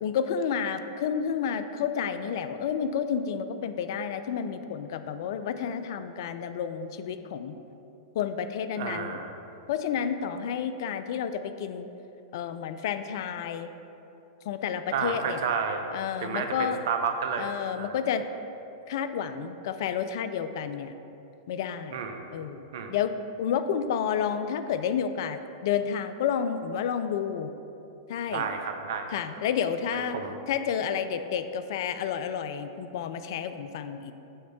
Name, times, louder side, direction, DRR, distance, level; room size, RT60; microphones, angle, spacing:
voice 1, 0.0-7.5 8.1-9.2 9.7-11.9 12.3-13.7 14.5-15.4 15.9-16.8 17.4-18.3 18.9-20.9 21.5-22.0 22.3-23.1 23.4-27.5 28.1-28.5 29.1-30.2 30.5-34.1, left 7 dB, 60° left, 10 dB, 0.3 m, -30 dB
voice 2, 8.7-9.3 14.9-15.8 16.2-17.5 17.8-17.9 21.9-22.3 22.7-22.9 28.3-29.1 29.9-30.4, right 6 dB, 65° right, 5 dB, 0.6 m, -31 dB
6.5 x 3.1 x 5.8 m, 2.9 s
hypercardioid pair, 100°, 2 cm